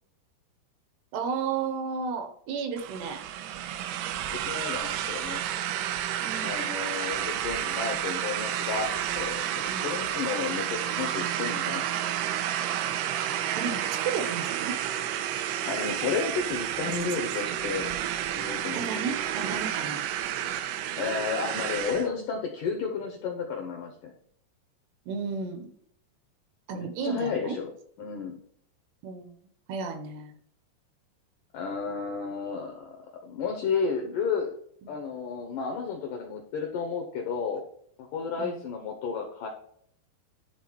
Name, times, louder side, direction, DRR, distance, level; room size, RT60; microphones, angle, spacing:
voice 1, 1.1-3.2 6.2-6.5 9.6-10.0 13.6-14.8 16.9-17.0 18.7-20.0 25.1-25.7 26.7-27.6 29.0-30.4 34.8-35.0 38.4-38.6, right 5 dB, 75° right, 6 dB, 2.9 m, -33 dB
sound 1, 2.8-22.1, right 11 dB, 90° right, 3.0 m, -31 dB
voice 2, 4.3-5.4 6.4-11.9 15.7-17.9 18.3-18.8 21.0-24.1 26.7-27.7 28.0-28.4 31.5-33.0 33.3-34.5 34.9-37.6 38.0-39.5, left 5 dB, 80° left, 2 dB, 1.9 m, -32 dB
11.5 x 3.9 x 4.5 m, 0.65 s
omnidirectional pair, 5.1 m